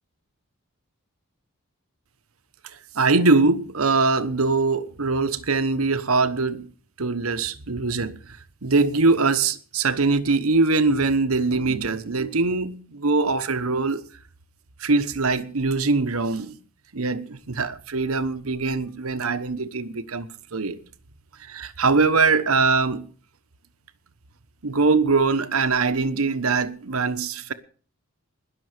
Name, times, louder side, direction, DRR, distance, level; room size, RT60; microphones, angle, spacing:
voice 1, 2.6-6.7 7.0-14.0 14.8-16.5 16.9-20.8 21.4-23.1 24.6-27.5, right 3 dB, 80° right, 1.1 m, -22 dB
20.5 x 6.9 x 6.6 m
head